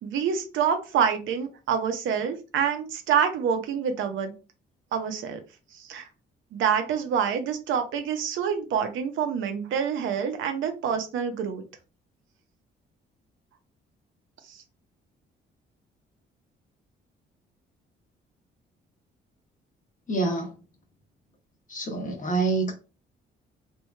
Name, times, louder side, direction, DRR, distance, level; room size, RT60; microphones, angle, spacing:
voice 1, 0.0-4.3 4.9-5.4 5.8-6.1 6.5-11.6 14.5-14.6, right 7 dB, 80° right, 0.6 m, -27 dB
voice 2, 20.1-20.5 21.7-22.7, right 3 dB, 40° left, 0.9 m, -26 dB
3.0 x 2.7 x 2.2 m
cardioid pair, 90°, 20 cm